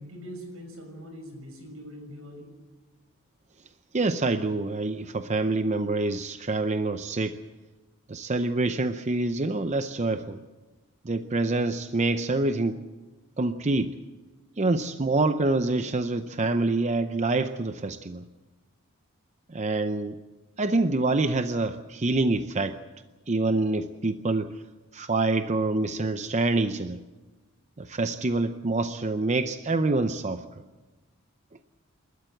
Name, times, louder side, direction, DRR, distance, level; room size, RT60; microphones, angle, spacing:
voice 1, 0.0-2.5, equal, 80° right, 4 dB, 6.5 m, -42 dB
voice 2, 3.9-7.4 8.1-10.4 11.0-12.8 13.4-14.0 14.6-18.2 19.5-20.2 20.6-22.8 23.3-24.6 24.9-27.0 27.8-30.4, right 2 dB, 35° right, 9 dB, 0.6 m, -26 dB
28.5 x 13.5 x 7.9 m, 1.2 s
head